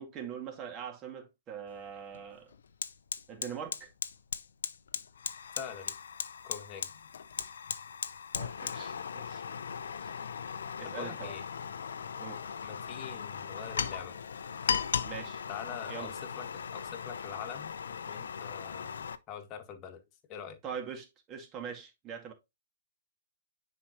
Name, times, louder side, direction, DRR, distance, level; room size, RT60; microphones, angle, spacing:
voice 1, 0.0-2.5 3.3-3.9 8.3-9.4 9.9-10.2 10.8-11.4 12.2-12.4 15.0-15.4 15.9-16.1 20.6-22.3, right 7 dB, 20° right, 2.1 m, -42 dB
Fire, 1.7-1.8 2.1-19.2, left 7 dB, 60° left, 0.7 m, -38 dB
voice 2, 5.6-5.9 6.4-6.9 10.8-11.4 12.6-14.2 15.5-17.7 18.1-20.0 20.3-20.6, left 8 dB, 25° left, 1.8 m, -44 dB
9.9 x 4.7 x 3.0 m
figure-of-eight pair, 125°, 0 cm